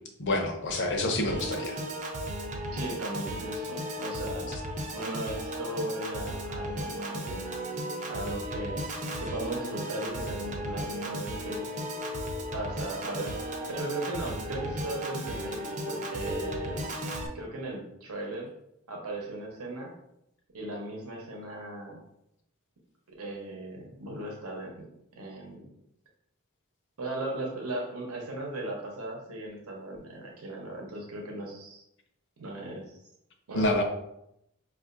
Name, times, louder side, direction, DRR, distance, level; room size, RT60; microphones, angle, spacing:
voice 1, 0.2-1.8 33.5-33.8, left 1 dB, 55° left, 4 dB, 0.6 m, -27 dB
Piano / Organ, 1.3-17.3, equal, 35° right, 0.5 m, -35 dB
voice 2, 2.7-4.5 4.9-7.5 8.1-8.8 9.2-11.6 12.5-13.4 13.7-15.6 15.9-17.0 17.3-18.5 18.9-19.9 20.5-22.0 23.2-24.9 25.2-25.7 27.0-31.8 32.4-32.9 33.5-33.8, right 1 dB, 85° right, 0 dB, 0.8 m, -37 dB
5.3 x 2.4 x 2.5 m, 0.80 s
head